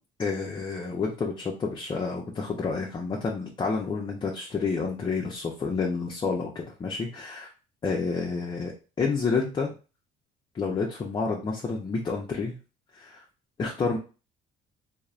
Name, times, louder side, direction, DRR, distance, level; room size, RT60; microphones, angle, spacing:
voice 1, 0.2-7.5 7.8-9.7 10.5-12.6 12.9-13.2 13.6-14.0, left 4 dB, 25° left, -1 dB, 0.5 m, -29 dB
3.0 x 2.0 x 2.3 m, 0.33 s
cardioid pair, 110°, 17 cm